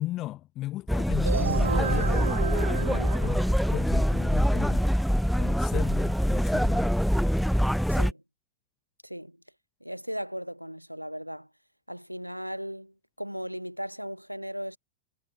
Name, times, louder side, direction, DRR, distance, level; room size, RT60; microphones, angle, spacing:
voice 1, 0.0-2.2 3.2-4.9 5.4-7.1, left 15 dB, 35° left, 7.9 m, -36 dB
sound 1, 0.9-8.1, equal, ahead, 0.6 m, -24 dB
sound 2, 1.2-3.9, right 6 dB, 70° right, 4.8 m, -32 dB
voice 2, 2.7-3.2 7.9-8.2 9.0-9.4 9.8-11.5 11.9-14.8, equal, 90° right, 2.9 m, -37 dB
figure-of-eight pair, 90°, 0 cm